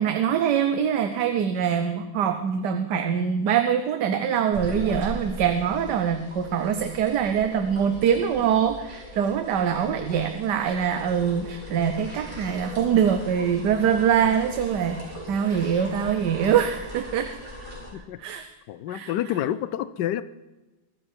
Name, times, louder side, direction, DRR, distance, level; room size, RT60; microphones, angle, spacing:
voice 1, 0.0-17.3 18.2-18.5 18.9-19.4, right 8 dB, 80° right, 8 dB, 1.5 m, -24 dB
sound 1, 4.5-17.9, equal, 40° right, 4.6 m, -39 dB
voice 2, 18.7-20.2, left 12 dB, 90° left, 15 dB, 1.3 m, -28 dB
23.0 x 10.0 x 4.4 m, 1.1 s
omnidirectional pair, 1.8 m